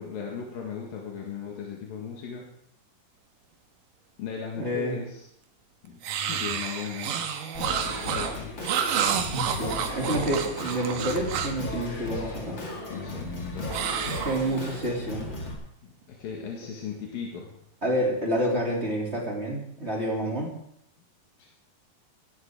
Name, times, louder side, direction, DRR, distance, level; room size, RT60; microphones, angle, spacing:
voice 1, 0.0-2.5 4.2-5.3 5.9-7.3 8.1-8.6 12.9-13.8 16.2-17.5 21.4-21.5, left 6 dB, 80° left, -2 dB, 3.7 m, -37 dB
voice 2, 4.6-4.9 9.3-12.6 14.1-15.3 17.8-20.5, right 1 dB, 20° right, -3 dB, 3.1 m, -28 dB
sound 1, 6.0-11.7 13.7-14.9, right 8 dB, 75° right, 2.7 m, -30 dB
Singing, 7.5-15.5, left 2 dB, 35° left, 2.9 m, -36 dB
17.5 x 14.0 x 3.8 m, 0.70 s
omnidirectional pair, 4.0 m